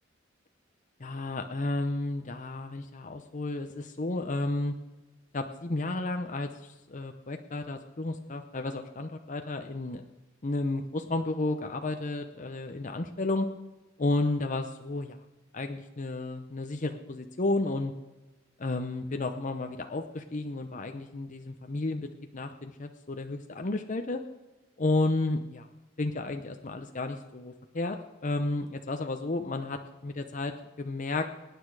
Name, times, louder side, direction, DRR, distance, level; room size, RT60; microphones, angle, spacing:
voice 1, 1.0-4.7 5.3-10.0 10.4-13.5 14.0-15.2 15.5-17.9 18.6-22.1 22.3-24.2 24.8-25.7 26.0-28.0 28.2-31.3, left 2 dB, 40° left, 5 dB, 0.8 m, -32 dB
23.5 x 9.7 x 4.8 m, 1.1 s
head